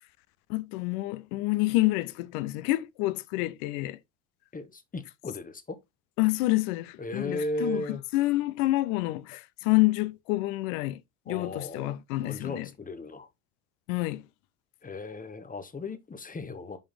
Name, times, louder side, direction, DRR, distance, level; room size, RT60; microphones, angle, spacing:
voice 1, 0.5-4.0 6.2-11.0 11.3-12.7 13.9-14.2, left 19 dB, 65° left, 0.8 m, -28 dB
voice 2, 4.5-5.8 7.0-8.0 11.3-13.3 14.8-16.8, left 2 dB, 15° left, 1.0 m, -36 dB
5.5 x 5.0 x 3.4 m
hypercardioid pair, 75°, 47 cm